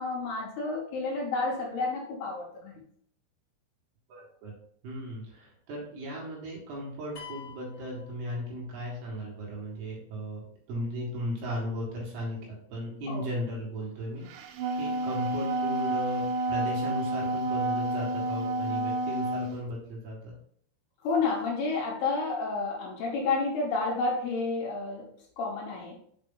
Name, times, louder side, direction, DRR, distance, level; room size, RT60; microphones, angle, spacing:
voice 1, 0.0-2.8 13.1-13.3 21.0-25.1 25.4-25.9, left 3 dB, 70° left, -1 dB, 2.8 m, -30 dB
voice 2, 4.1-4.5 4.8-10.4 10.7-20.3, equal, 65° right, -4 dB, 3.7 m, -36 dB
sound 1, 7.2-8.9, left 7 dB, 50° left, 1.8 m, -47 dB
Wind instrument woodwind instrument, 14.4-19.5, right 2 dB, 85° right, 3.0 m, -29 dB
7.2 x 5.0 x 3.9 m, 0.64 s
omnidirectional pair, 5.3 m